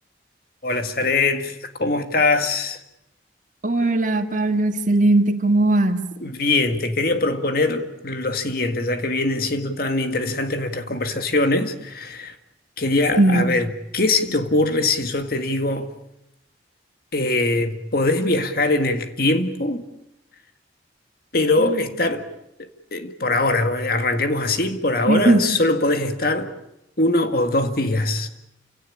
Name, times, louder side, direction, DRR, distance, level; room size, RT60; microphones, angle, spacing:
voice 1, 0.6-2.8 6.2-12.3 12.8-13.7 13.9-15.9 17.1-19.8 21.3-22.3 22.6-26.5 27.0-28.3, left 2 dB, 50° left, 2.0 m, -22 dB
voice 2, 3.6-6.0 13.2-13.5 21.6-21.8 25.1-25.4, right 2 dB, 40° right, 1.8 m, -18 dB
28.5 x 17.5 x 9.9 m
head